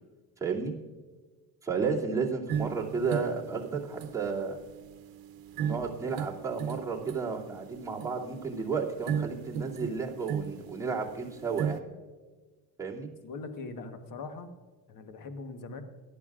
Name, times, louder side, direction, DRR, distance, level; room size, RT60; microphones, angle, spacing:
voice 1, 0.4-0.7 1.6-4.6 5.6-11.8 12.8-13.1, right 5 dB, 10° right, -5 dB, 2.6 m, -32 dB
sound 1, 2.5-11.8, right 8 dB, 65° right, 0.9 m, -37 dB
voice 2, 13.2-14.5 14.9-15.8, left 3 dB, 55° left, 7 dB, 1.3 m, -41 dB
18.0 x 11.5 x 2.5 m, 1.4 s
cardioid pair, 115°, 39 cm